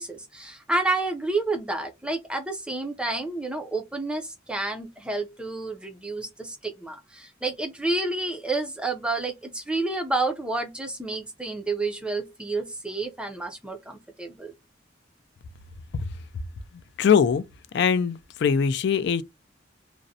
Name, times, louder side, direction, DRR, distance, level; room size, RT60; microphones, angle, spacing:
voice 1, 0.0-14.5, right 2 dB, 5° right, 0.4 m, -30 dB
voice 2, 17.0-17.4 17.7-19.2, left 6 dB, 60° left, 0.3 m, -22 dB
2.4 x 2.0 x 2.6 m
head